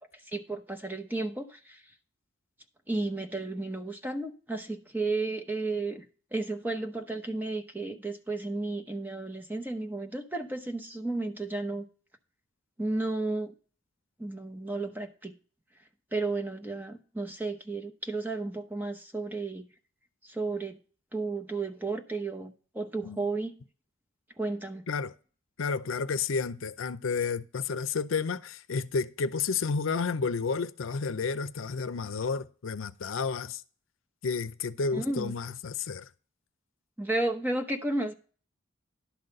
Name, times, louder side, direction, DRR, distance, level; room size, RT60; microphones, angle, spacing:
voice 1, 0.3-1.8 2.9-6.0 6.3-11.8 12.8-13.5 14.2-15.3 16.1-19.6 20.2-20.8 21.1-23.5 24.4-24.8 34.9-35.3 37.0-38.1, right 2 dB, 10° right, 0.9 m, -33 dB
voice 2, 25.6-33.6 34.2-36.1, left 5 dB, 85° left, 0.6 m, -31 dB
11.5 x 4.0 x 7.7 m
head